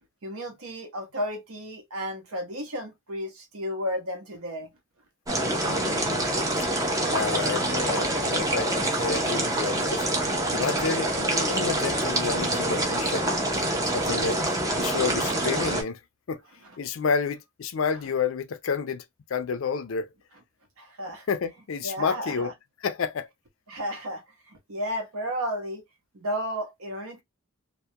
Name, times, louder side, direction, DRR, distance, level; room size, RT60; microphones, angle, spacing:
voice 1, 0.2-4.7 13.2-13.3 20.8-21.2 21.8-22.5 23.7-25.8 26.1-27.2, equal, 75° right, 0.8 m, -33 dB
sound 1, 5.3-15.8, right 1 dB, 15° right, 0.4 m, -26 dB
voice 2, 5.6-6.3 6.6-6.7 7.1-10.1 10.5-13.3 13.9-14.4 14.8-16.0 16.3-16.4 16.8-19.0 19.3-20.1 21.3-22.5 22.8-23.3, left 5 dB, 65° left, 0.4 m, -30 dB
2.3 x 2.1 x 2.7 m
head